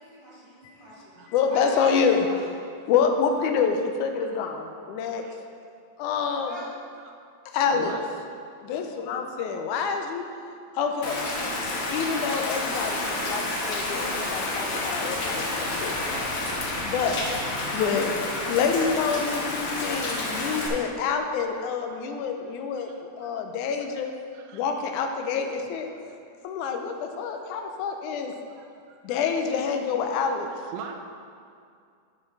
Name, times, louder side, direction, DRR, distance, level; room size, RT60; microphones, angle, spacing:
voice 1, 0.0-1.1 1.5-2.4 6.2-6.7 10.7-12.4, equal, 15° left, -9 dB, 1.7 m, -42 dB
voice 2, 1.3-2.3 2.9-5.2 6.0-6.6 7.5-7.9 8.6-10.2 10.7-11.2 11.9-16.4 16.8-18.1 18.5-22.9 23.2-24.1 24.5-25.9 26.4-28.3 29.0-30.5, left 6 dB, 85° left, 5 dB, 2.1 m, -27 dB
voice 3, 7.7-8.1 21.4-21.5 21.8-22.1 22.4-23.3 24.3-24.7 26.1-26.2 27.3-27.5 28.5-29.2 30.7-31.0, right 7 dB, 75° right, 3 dB, 1.7 m, -44 dB
Rain, 11.0-20.7, left 2 dB, 60° left, 1.8 m, -29 dB
7.1 x 7.0 x 5.5 m, 2.3 s
omnidirectional pair, 3.5 m